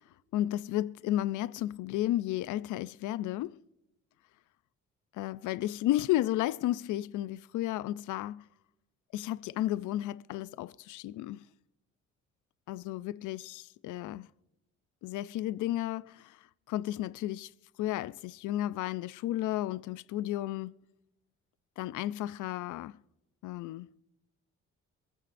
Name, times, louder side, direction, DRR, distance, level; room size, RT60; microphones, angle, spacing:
voice 1, 0.3-3.6 5.1-8.4 9.1-11.5 12.7-14.3 15.0-17.5 17.8-20.7 21.8-23.0 23.4-23.9, left 14 dB, 80° left, 0.5 m, -33 dB
26.5 x 9.2 x 2.6 m
cardioid pair, 90°, 30 cm